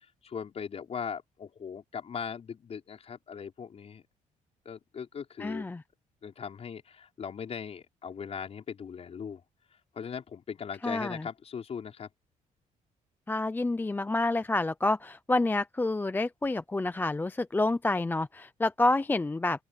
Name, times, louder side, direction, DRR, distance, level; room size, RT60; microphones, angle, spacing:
voice 1, 0.0-4.0 4.7-5.7 6.2-9.4 9.9-12.1, left 7 dB, 45° left, 5.2 m, -39 dB
voice 2, 5.4-5.8 10.8-11.3 13.3-19.6, left 2 dB, 15° left, 0.6 m, -28 dB
open air
cardioid pair, 115°, 14 cm